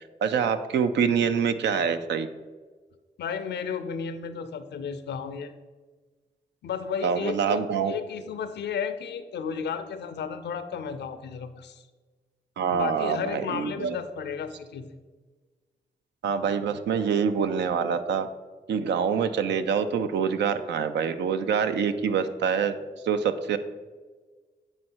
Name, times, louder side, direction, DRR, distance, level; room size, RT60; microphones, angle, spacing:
voice 1, 0.2-2.3 7.0-7.9 12.6-14.0 16.2-18.3 18.7-22.8 23.0-23.6, right 7 dB, 85° right, 10 dB, 0.4 m, -25 dB
voice 2, 3.2-5.5 6.6-11.8 12.7-15.0, left 7 dB, 80° left, 11 dB, 0.5 m, -33 dB
7.5 x 3.2 x 4.4 m, 1.4 s
supercardioid pair, 40°, 18 cm